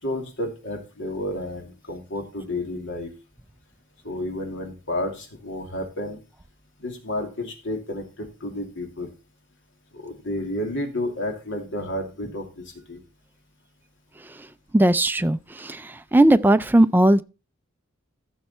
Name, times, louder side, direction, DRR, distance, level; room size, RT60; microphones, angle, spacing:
voice 1, 0.0-3.1 4.0-6.2 6.8-9.1 9.9-13.0, left 1 dB, 60° left, 2.6 m, -31 dB
voice 2, 14.7-17.2, right 1 dB, 10° right, 0.4 m, -18 dB
14.5 x 5.7 x 4.3 m
head